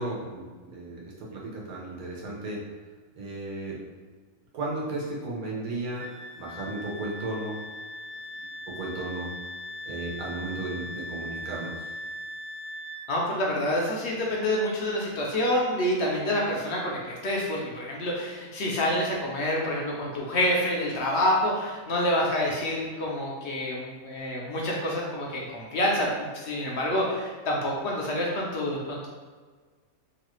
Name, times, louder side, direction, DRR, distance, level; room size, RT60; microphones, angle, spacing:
voice 1, 0.0-2.6 3.2-3.8 4.5-6.1 6.4-7.5 8.4-9.3 9.8-11.9, right 2 dB, 85° right, -4 dB, 1.3 m, -34 dB
Wind instrument woodwind instrument, 6.0-13.0, left 1 dB, 55° right, 0.9 m, -39 dB
voice 2, 13.1-29.1, left 1 dB, 60° left, -2 dB, 0.7 m, -27 dB
3.0 x 2.3 x 3.0 m, 1.5 s
omnidirectional pair, 1.5 m